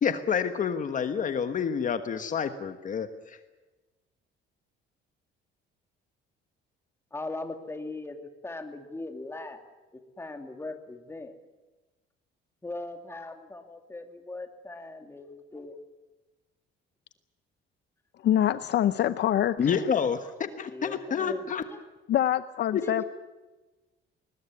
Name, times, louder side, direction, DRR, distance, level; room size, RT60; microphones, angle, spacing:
voice 1, 0.0-3.4 19.6-21.6 22.7-23.0, left 7 dB, 40° left, 9 dB, 1.4 m, -28 dB
voice 2, 7.1-8.2 8.4-9.6 9.9-11.3 12.6-15.8 20.7-21.8 22.8-22.9, left 2 dB, 10° left, 6 dB, 2.5 m, -39 dB
voice 3, 18.2-19.8 22.1-23.0, left 11 dB, 55° left, 13 dB, 0.7 m, -25 dB
21.5 x 20.5 x 9.8 m, 1.2 s
cardioid pair, 145°, 21 cm